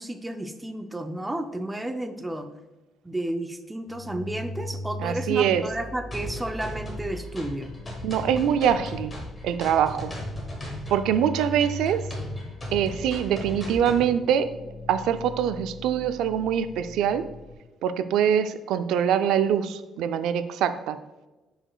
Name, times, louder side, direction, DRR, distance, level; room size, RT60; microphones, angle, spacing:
voice 1, 0.0-2.5 3.0-7.7, right 1 dB, 5° right, 6 dB, 0.4 m, -32 dB
sound 1, 3.9-17.5, left 1 dB, 55° left, 1.0 m, -39 dB
voice 2, 5.0-5.6 8.0-9.1 9.4-10.1 10.9-12.1 12.7-14.5 14.9-17.2 17.8-21.0, right 9 dB, 85° right, 11 dB, 0.4 m, -24 dB
sound 2, 6.1-14.1, left 1 dB, 20° left, 1.1 m, -38 dB
9.8 x 5.0 x 2.3 m, 1.1 s
cardioid pair, 180°, 0 cm